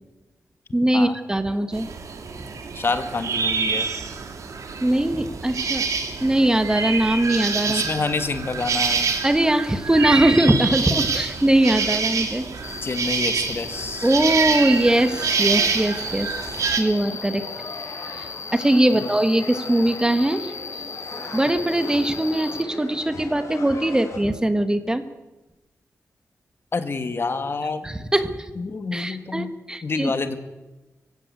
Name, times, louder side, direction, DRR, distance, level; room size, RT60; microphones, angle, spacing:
voice 1, 0.7-1.9 4.8-5.9 6.2-7.8 9.2-12.5 14.0-16.3 16.8-17.4 18.1-20.5 21.3-25.0 27.8-28.5 28.9-30.1, right 1 dB, 15° right, 9 dB, 1.4 m, -21 dB
sound 1, 1.7-16.8, right 5 dB, 80° right, 2.9 m, -26 dB
voice 2, 2.8-3.9 7.7-9.1 12.8-14.1 26.7-27.9 28.6-29.5 29.8-30.4, left 4 dB, 45° left, 9 dB, 1.9 m, -27 dB
Cricket, 12.6-22.6, left 5 dB, 60° left, 1.2 m, -37 dB
sound 2, 14.6-24.2, left 2 dB, 80° left, 7.2 m, -39 dB
24.0 x 16.0 x 8.2 m, 1.1 s
wide cardioid pair, 110°, 5 cm